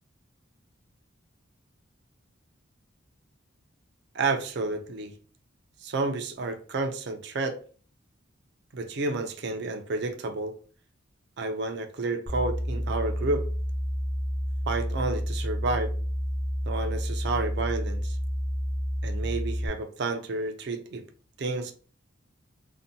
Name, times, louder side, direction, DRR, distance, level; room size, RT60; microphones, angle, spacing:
voice 1, 4.1-5.1 5.8-7.6 8.7-10.5 11.4-13.5 14.7-15.9 16.7-18.2 19.0-21.0 21.4-21.7, right 3 dB, 55° right, 0.4 m, -30 dB
sound 1, 12.3-19.7, equal, 5° left, 0.5 m, -30 dB
2.6 x 2.1 x 2.6 m
head